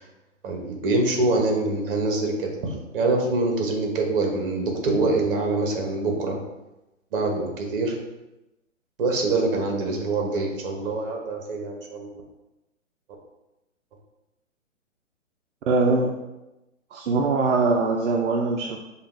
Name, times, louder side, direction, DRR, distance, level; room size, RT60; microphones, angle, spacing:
voice 1, 0.4-6.4 7.1-8.0 9.0-12.1, right 2 dB, 45° right, 2 dB, 1.0 m, -25 dB
voice 2, 15.7-16.2 16.9-18.8, right 3 dB, 65° right, 1 dB, 0.5 m, -22 dB
5.0 x 2.4 x 3.1 m, 0.98 s
hypercardioid pair, 135°, 39 cm